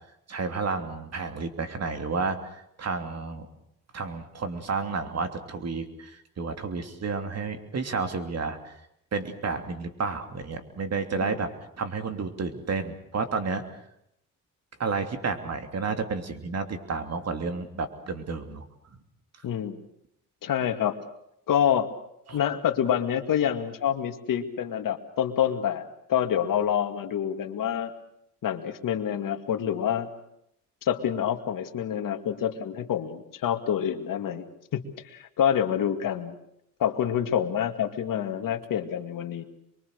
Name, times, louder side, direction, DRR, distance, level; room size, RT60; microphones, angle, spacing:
voice 1, 0.3-3.5 3.9-8.7 9.1-11.5 11.8-13.6 14.8-18.7 22.3-22.4, right 4 dB, 50° right, 7 dB, 3.0 m, -31 dB
voice 2, 19.4-19.8 20.4-21.0 21.5-21.9 22.3-27.9 28.4-30.1 30.8-34.5 34.7-34.8 35.1-36.3 36.8-39.4, left 9 dB, 70° left, 6 dB, 2.3 m, -27 dB
25.0 x 23.0 x 6.7 m, 0.76 s
cardioid pair, 85°, 34 cm